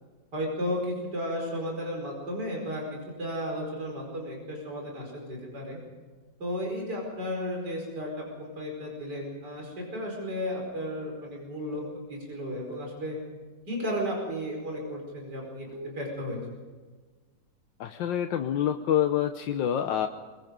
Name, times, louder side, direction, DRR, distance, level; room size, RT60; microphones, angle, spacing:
voice 1, 0.3-5.8 6.4-11.8 12.1-13.2 13.7-16.4, equal, 60° right, 0 dB, 5.6 m, -34 dB
sound 1, 10.7-11.0 11.7-12.0 12.7-13.0 13.7-14.0 14.7-15.0 15.7-16.0, left 2 dB, 15° right, 3.3 m, -43 dB
voice 2, 17.8-20.1, left 10 dB, 85° left, 6 dB, 1.6 m, -27 dB
23.5 x 23.5 x 5.3 m, 1.4 s
omnidirectional pair, 2.0 m